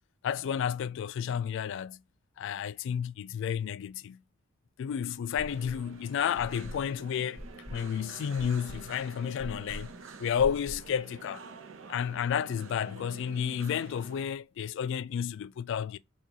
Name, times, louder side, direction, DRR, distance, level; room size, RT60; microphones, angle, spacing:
voice 1, 0.2-2.0 2.4-4.2 4.8-7.4 7.7-9.9 10.2-11.4 11.9-16.0, left 8 dB, 65° left, 0.3 m, -31 dB
sound 1, 5.4-5.9 6.4-11.0, equal, 5° right, 0.7 m, -44 dB
sound 2, 5.5-14.3, right 4 dB, 70° right, 0.6 m, -49 dB
3.7 x 2.3 x 2.8 m
head